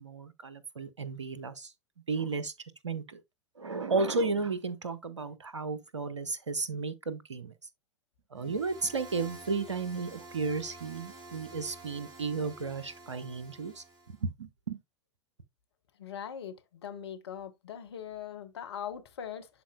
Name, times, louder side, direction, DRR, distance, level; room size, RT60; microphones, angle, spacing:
voice 1, 0.0-1.7 2.1-2.5 2.8-3.2 3.6-7.5 8.3-13.8 14.2-14.8, right 4 dB, 75° right, 0.8 m, -33 dB
sound 1, 8.4-14.2, right 2 dB, 25° right, 2.6 m, -49 dB
voice 2, 16.0-19.5, left 8 dB, 60° left, 1.1 m, -41 dB
11.5 x 4.2 x 2.3 m
figure-of-eight pair, 95°, 15 cm